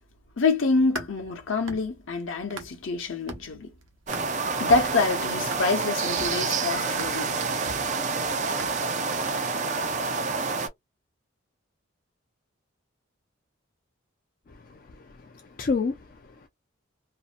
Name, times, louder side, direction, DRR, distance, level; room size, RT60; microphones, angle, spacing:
voice 1, 0.4-3.7 4.6-7.4, left 3 dB, 70° left, 0.8 m, -26 dB
sound 1, 0.7-3.0 3.3-9.2, right 3 dB, 70° right, 0.7 m, -43 dB
sound 2, 4.1-10.7, right 4 dB, 35° right, 0.4 m, -28 dB
voice 2, 14.5-16.5, left 4 dB, 45° left, 0.3 m, -31 dB
2.6 x 2.1 x 2.4 m
head